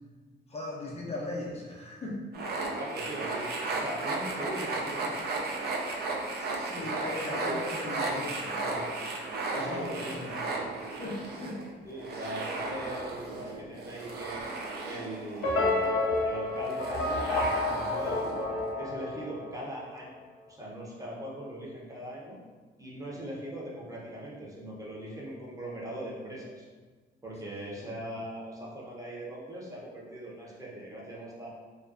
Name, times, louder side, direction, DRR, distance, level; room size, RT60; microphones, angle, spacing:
voice 1, 0.5-2.2 6.4-8.8 9.5-10.3 10.8-11.6 17.7-17.9 27.9-28.0, left 2 dB, 30° left, -3 dB, 0.5 m, -38 dB
sound 1, 2.3-18.7, right 3 dB, 55° right, 0.4 m, -35 dB
voice 2, 2.7-5.1 6.8-7.6 9.6-10.2 11.8-14.5 14.8-15.9 16.2-17.2 17.9-20.2 20.5-22.4 22.8-26.7 27.2-31.5, right 1 dB, 15° right, -5 dB, 0.7 m, -40 dB
sound 2, 15.4-19.7, left 2 dB, 85° left, 0.5 m, -29 dB
2.4 x 2.2 x 2.4 m, 1.4 s
cardioid pair, 90°, 20 cm